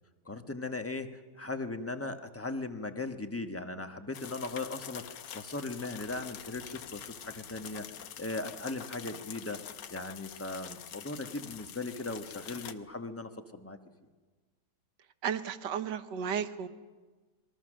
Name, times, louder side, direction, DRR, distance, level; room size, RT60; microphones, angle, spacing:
voice 1, 0.2-9.6 9.9-13.8, left 2 dB, 10° left, 7 dB, 0.9 m, -38 dB
sound 1, 4.1-12.7, left 9 dB, 80° left, 1.6 m, -46 dB
voice 2, 15.2-16.7, right 7 dB, 85° right, 10 dB, 1.6 m, -33 dB
27.5 x 22.0 x 6.3 m, 1.3 s
omnidirectional pair, 1.8 m